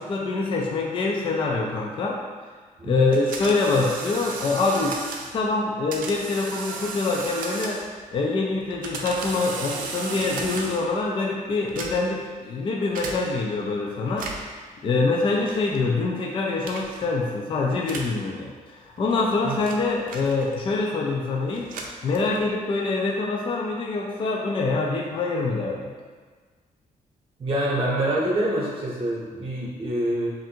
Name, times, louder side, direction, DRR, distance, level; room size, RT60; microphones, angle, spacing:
voice 1, 0.0-2.2 2.8-5.0 5.3-7.8 8.1-14.5 14.8-21.7 22.0-25.9, left 3 dB, 40° left, -1 dB, 0.4 m, -25 dB
voice 2, 2.8-3.1 19.4-19.6 27.4-30.3, right 1 dB, 40° right, -5 dB, 0.8 m, -26 dB
sound 1, 3.1-5.4 5.9-8.0 8.6-10.9 11.6-12.2 12.9-13.2 14.1-14.6 15.5-15.8 16.6-17.0 17.8-18.2 19.0-20.7 21.5-22.5, right 4 dB, 75° right, 0.5 m, -35 dB
3.6 x 2.6 x 4.3 m, 1.5 s
wide cardioid pair, 160°, 14 cm